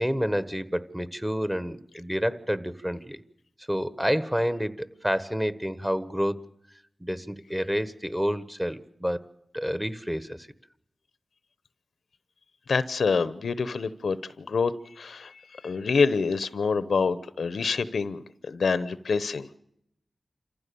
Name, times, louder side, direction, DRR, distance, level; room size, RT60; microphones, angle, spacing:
voice 1, 0.0-3.2 3.7-6.4 7.0-9.3 9.5-10.5, equal, 10° right, 13 dB, 1.4 m, -29 dB
voice 2, 12.7-15.3 15.6-19.6, left 5 dB, 85° left, 15 dB, 0.9 m, -26 dB
28.0 x 15.0 x 7.0 m, 0.78 s
cardioid pair, 50°, 0 cm